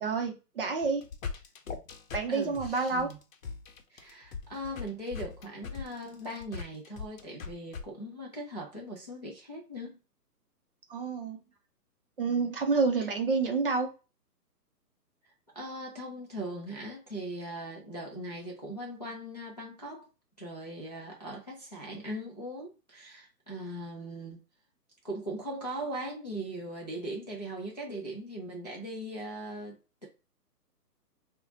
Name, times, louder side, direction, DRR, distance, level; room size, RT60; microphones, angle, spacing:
voice 1, 0.0-1.0 2.1-3.1 10.9-11.4 12.2-13.9, right 4 dB, 35° right, 0.6 m, -28 dB
sound 1, 0.8-7.8, left 5 dB, 55° left, 0.7 m, -40 dB
voice 2, 2.3-3.2 3.9-10.0 15.5-20.1 20.4-24.4 25.0-30.1, right 1 dB, 30° left, 0.4 m, -39 dB
2.7 x 2.1 x 3.8 m
figure-of-eight pair, 140°, 49 cm